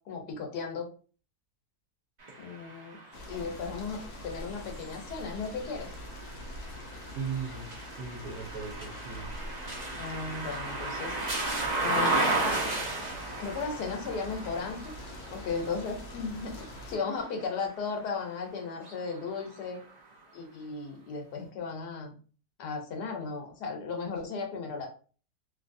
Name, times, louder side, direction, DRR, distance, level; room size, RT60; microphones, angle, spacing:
voice 1, 0.1-0.9 2.4-3.0 3.3-5.9 10.0-11.2 11.8-12.3 13.4-14.9 15.3-19.8 20.3-22.2 22.6-24.9, left 4 dB, 80° left, 3 dB, 1.4 m, -35 dB
sound 1, 2.2-18.1 18.7-19.9, right 2 dB, 35° right, 0.7 m, -35 dB
sound 2, 3.1-17.0, left 1 dB, 60° left, 0.8 m, -44 dB
voice 2, 7.1-9.3, right 6 dB, 70° right, -3 dB, 1.3 m, -38 dB
3.1 x 2.6 x 2.5 m, 0.38 s
omnidirectional pair, 1.7 m